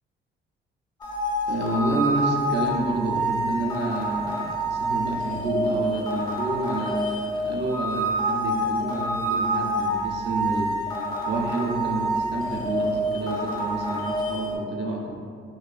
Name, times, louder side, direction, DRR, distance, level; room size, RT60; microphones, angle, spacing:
sound 1, 1.0-14.6, right 1 dB, 20° left, 0.5 m, -27 dB
voice 1, 1.5-10.7 11.2-15.2, right 2 dB, 60° right, 0 dB, 0.4 m, -29 dB
2.7 x 2.3 x 2.3 m, 2.2 s
cardioid pair, 90°, 20 cm